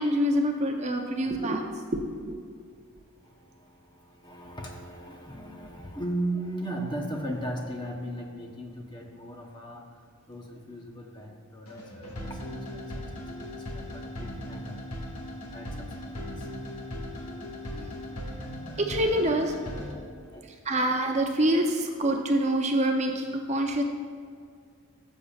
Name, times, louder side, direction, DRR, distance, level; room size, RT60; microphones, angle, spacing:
voice 1, 0.0-1.6 1.9-2.4 18.8-19.5 20.6-23.8, right 1 dB, 30° right, 2 dB, 0.6 m, -26 dB
voice 2, 4.2-9.8 10.3-13.0 13.3-14.7 15.5-16.1 20.3-20.4, right 1 dB, 20° left, 1 dB, 0.9 m, -37 dB
sound 1, 11.7-19.9, equal, 85° left, 1.6 m, -38 dB
13.5 x 7.2 x 2.4 m, 2.1 s
head